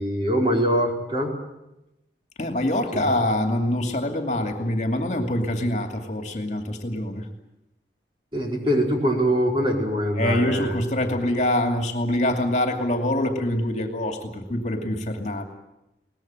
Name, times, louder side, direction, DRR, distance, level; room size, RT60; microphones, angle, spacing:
voice 1, 0.0-1.3 8.3-10.8, right 1 dB, 30° right, 0 dB, 4.6 m, -23 dB
voice 2, 2.4-7.3 10.2-15.4, left 1 dB, 40° left, 4 dB, 2.5 m, -25 dB
22.5 x 19.5 x 9.0 m, 0.90 s
head